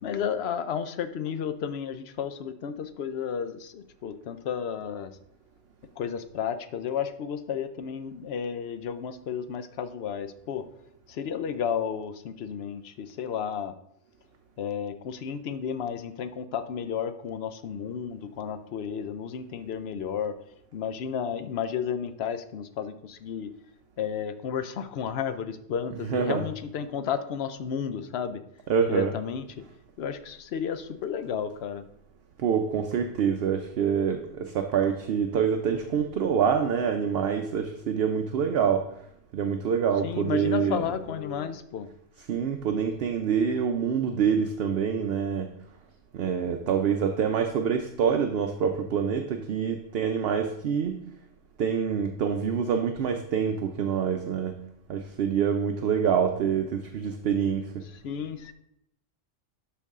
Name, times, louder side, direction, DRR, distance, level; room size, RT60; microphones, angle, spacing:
voice 1, 0.0-5.1 6.0-10.7 11.1-13.7 14.6-20.4 20.7-23.5 24.0-28.4 28.9-29.5 30.0-31.8 40.0-41.9 57.9-58.5, left 7 dB, 60° left, 11 dB, 0.8 m, -32 dB
voice 2, 26.1-26.4 28.7-29.1 32.4-38.8 39.3-40.8 42.3-45.5 46.1-51.0 51.6-54.6 54.9-57.8, right 7 dB, 60° right, 6 dB, 0.7 m, -26 dB
12.0 x 4.6 x 3.6 m, 0.76 s
omnidirectional pair, 1.3 m